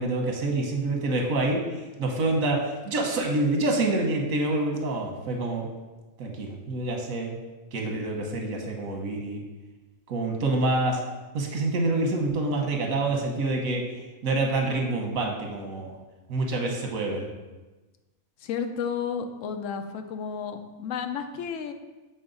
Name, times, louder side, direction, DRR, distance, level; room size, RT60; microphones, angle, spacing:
voice 1, 0.0-1.6 2.0-5.7 6.2-7.4 7.7-9.4 10.1-11.0 11.3-13.8 14.2-15.9 16.3-17.3, right 2 dB, 80° right, 2 dB, 1.4 m, -27 dB
voice 2, 18.4-21.7, left 7 dB, 70° left, 7 dB, 0.9 m, -32 dB
6.6 x 4.2 x 3.9 m, 1.2 s
omnidirectional pair, 1.4 m